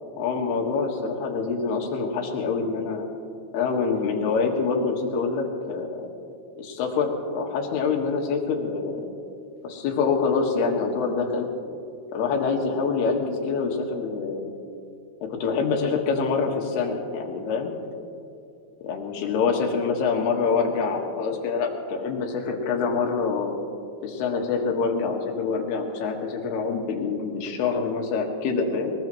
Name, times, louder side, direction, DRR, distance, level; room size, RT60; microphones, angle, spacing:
voice 1, 0.2-3.0 3.5-6.1 6.6-9.1 9.6-11.5 12.1-14.5 15.2-17.7 18.8-23.6 24.0-28.9, left 5 dB, 85° left, 1 dB, 3.6 m, -26 dB
21.5 x 21.5 x 3.1 m, 2.6 s
omnidirectional pair, 4.5 m